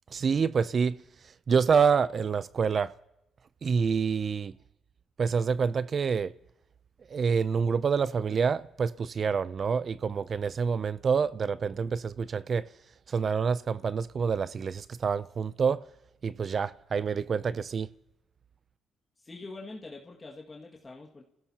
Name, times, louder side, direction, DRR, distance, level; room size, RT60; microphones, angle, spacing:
voice 1, 0.1-1.0 1.5-2.9 3.6-4.5 5.2-6.3 7.1-12.7 13.1-15.8 16.2-17.9, right 6 dB, 45° right, 0.4 m, -27 dB
voice 2, 19.2-21.2, left 3 dB, 25° left, 1.9 m, -44 dB
28.5 x 16.0 x 2.8 m
cardioid pair, 90°, 0 cm